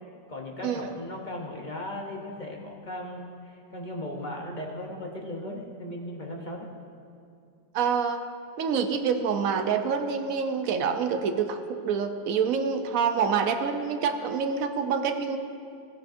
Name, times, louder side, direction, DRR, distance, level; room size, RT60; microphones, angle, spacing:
voice 1, 0.3-6.7, left 1 dB, 50° left, -1 dB, 0.5 m, -37 dB
voice 2, 7.7-8.2 8.6-15.4, right 6 dB, 70° right, 7 dB, 0.8 m, -26 dB
15.5 x 10.5 x 2.6 m, 2.5 s
omnidirectional pair, 2.0 m